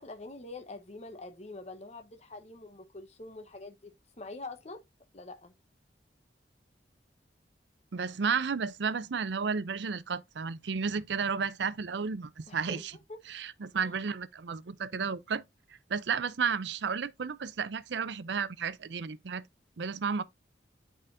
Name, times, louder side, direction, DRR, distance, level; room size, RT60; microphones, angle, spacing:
voice 1, 0.0-3.9 4.2-4.8 5.1-5.5 12.5-12.8 13.1-13.2 13.8-13.9, left 2 dB, 35° left, 0.9 m, -45 dB
voice 2, 7.9-13.0 13.3-15.4 15.9-19.4 19.8-20.2, right 5 dB, 70° right, 0.5 m, -32 dB
9.0 x 5.0 x 2.5 m
head